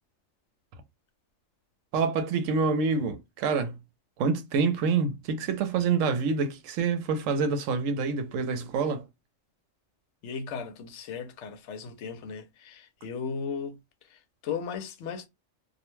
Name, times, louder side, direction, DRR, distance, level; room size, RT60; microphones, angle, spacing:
voice 1, 1.9-3.8 4.2-9.0, right 5 dB, 80° right, 0.9 m, -27 dB
voice 2, 10.2-15.3, left 6 dB, 70° left, 0.9 m, -36 dB
2.4 x 2.1 x 3.0 m
omnidirectional pair, 1.3 m